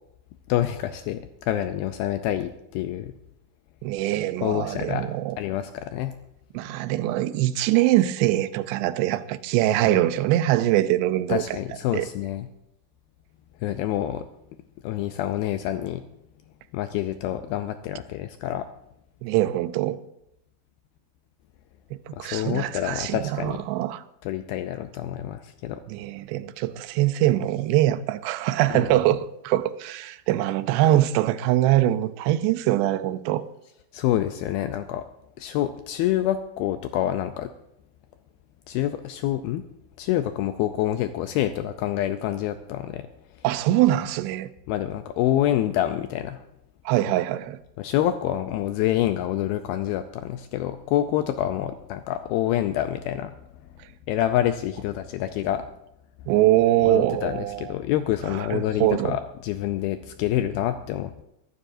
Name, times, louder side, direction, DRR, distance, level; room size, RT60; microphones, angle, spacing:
voice 1, 0.5-3.1 4.4-5.1 5.4-6.1 9.8-10.0 11.3-12.5 13.6-14.3 14.8-16.0 16.7-18.7 22.2-23.6 24.2-25.8 28.7-28.9 33.9-35.0 35.4-37.5 38.7-39.7 40.0-43.1 44.7-46.4 47.8-53.3 54.1-55.6 56.8-61.2, left 12 dB, 85° left, 2.2 m, -27 dB
voice 2, 3.8-5.4 6.5-11.6 11.9-12.1 19.2-20.0 22.1-24.0 25.9-33.4 43.4-44.5 46.9-47.6 56.3-57.7 58.3-59.2, right 14 dB, 90° right, 2.8 m, -23 dB
22.5 x 12.5 x 2.6 m
omnidirectional pair, 4.8 m